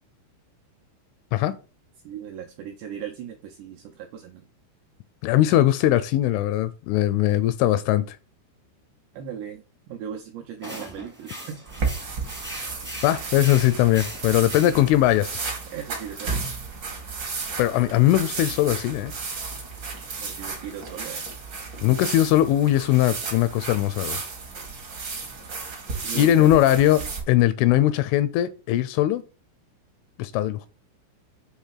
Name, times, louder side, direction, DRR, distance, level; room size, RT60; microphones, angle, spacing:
voice 1, 2.0-4.5 9.1-11.6 15.7-16.5 20.2-21.3 26.0-26.6, right 8 dB, 85° right, 2.4 m, -38 dB
voice 2, 5.2-8.2 13.0-15.4 17.6-19.1 21.8-24.2 26.2-27.0 27.3-29.2 30.2-30.6, left 13 dB, 85° left, 2.9 m, -20 dB
sound 1, 10.6-15.2, right 1 dB, 10° right, 0.5 m, -39 dB
sound 2, 11.7-27.2, right 4 dB, 65° right, 1.1 m, -33 dB
8.1 x 3.3 x 6.4 m
omnidirectional pair, 5.9 m